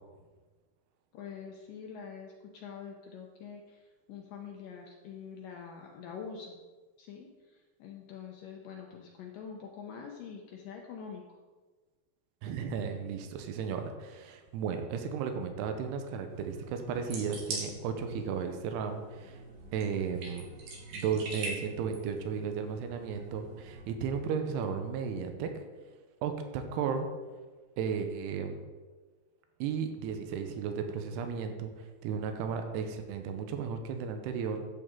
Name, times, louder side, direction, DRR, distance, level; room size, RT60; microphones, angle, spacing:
voice 1, 1.1-6.6 7.0-11.4, left 6 dB, 75° left, 1 dB, 2.1 m, -45 dB
voice 2, 12.4-19.4 19.7-20.5 20.9-25.5 26.2-27.1 27.8-28.6 29.6-34.6, right 6 dB, 90° right, 6 dB, 2.9 m, -34 dB
sound 1, 16.3-23.8, right 2 dB, 70° right, 3.9 m, -43 dB
11.5 x 8.3 x 3.7 m, 1.3 s
omnidirectional pair, 4.6 m